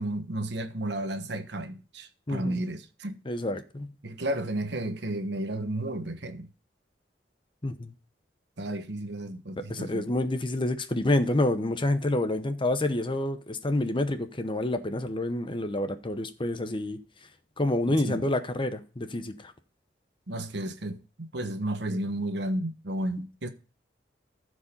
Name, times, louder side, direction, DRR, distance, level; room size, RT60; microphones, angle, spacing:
voice 1, 0.0-3.2 4.0-6.5 8.6-10.0 17.9-18.2 20.3-23.5, right 1 dB, 70° right, 1.2 m, -33 dB
voice 2, 2.3-2.6 3.3-3.9 7.6-7.9 9.7-17.0 17.6-19.5, left 1 dB, 30° left, 0.9 m, -28 dB
14.0 x 4.9 x 5.3 m
head